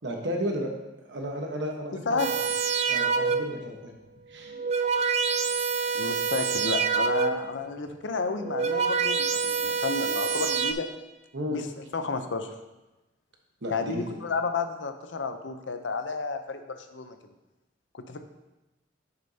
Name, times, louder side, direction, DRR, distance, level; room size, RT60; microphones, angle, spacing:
voice 1, 0.0-0.7 1.0-2.2 2.9-3.9 4.3-4.5 5.8-6.0 11.3-11.6 13.6-14.1, equal, 70° right, 1 dB, 1.2 m, -33 dB
voice 2, 1.9-2.3 5.9-10.9 11.5-12.5 13.7-17.2 17.9-18.2, left 4 dB, 80° left, 8 dB, 0.6 m, -31 dB
sound 1, 2.2-3.7 4.4-7.6 8.3-10.7, right 5 dB, 35° right, 0.3 m, -27 dB
8.7 x 6.8 x 2.8 m, 1.0 s
head